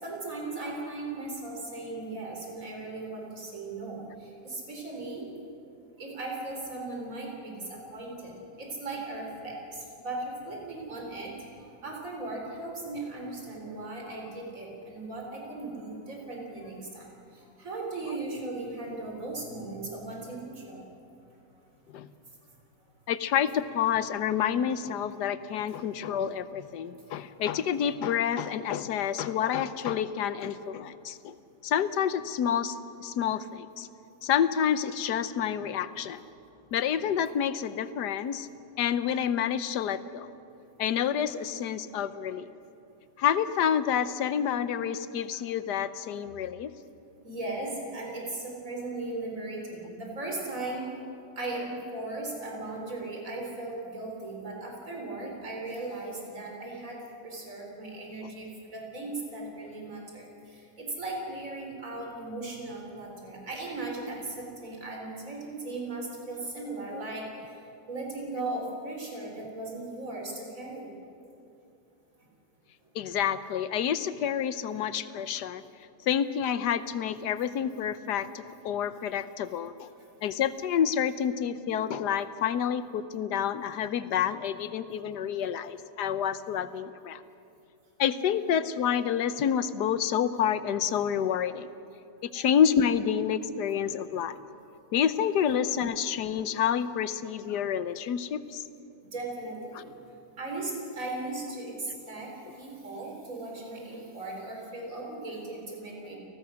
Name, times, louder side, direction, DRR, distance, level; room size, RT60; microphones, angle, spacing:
voice 1, 0.0-5.2 6.0-17.1 17.3-20.8 47.2-50.9 51.4-67.3 67.9-70.9 92.3-92.5 99.1-99.9 100.4-106.2, right 2 dB, 55° right, -1 dB, 4.6 m, -37 dB
voice 2, 23.1-31.3 31.6-33.9 34.2-36.2 36.7-38.5 38.8-40.3 40.8-42.5 43.2-46.7 72.9-75.6 76.0-79.9 80.2-87.2 88.0-91.7 92.2-94.4 94.9-98.6, left 8 dB, 85° left, 13 dB, 1.4 m, -28 dB
30.0 x 19.0 x 6.4 m, 2.6 s
omnidirectional pair, 1.7 m